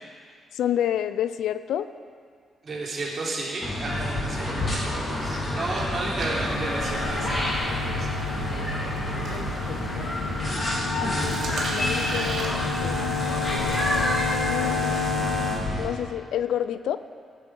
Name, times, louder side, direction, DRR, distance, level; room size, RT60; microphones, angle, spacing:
voice 1, 0.5-1.9 9.3-10.2 11.1-13.2 14.4-15.1 15.8-17.0, left 10 dB, 85° left, 13 dB, 0.4 m, -30 dB
voice 2, 2.6-7.6 7.8-8.1, right 2 dB, 45° right, -5 dB, 3.1 m, -33 dB
sound 1, 3.6-15.9, left 1 dB, 35° left, 2.7 m, -28 dB
sound 2, 4.6-14.0, right 2 dB, 65° right, 2.3 m, -39 dB
sound 3, 6.4-15.6, left 5 dB, 55° left, 2.1 m, -31 dB
12.5 x 7.6 x 4.8 m, 2.1 s
cardioid pair, 95°, 0 cm